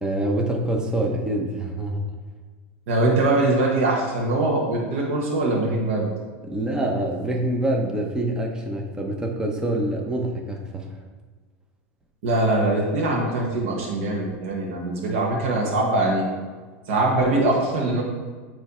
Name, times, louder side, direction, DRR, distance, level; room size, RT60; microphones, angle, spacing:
voice 1, 0.0-2.0 6.5-10.9, right 1 dB, 10° right, 1 dB, 0.7 m, -25 dB
voice 2, 2.9-6.1 12.2-16.3 16.9-18.0, right 2 dB, 80° right, -2 dB, 1.4 m, -22 dB
8.6 x 3.2 x 4.3 m, 1.4 s
supercardioid pair, 135°, 7 cm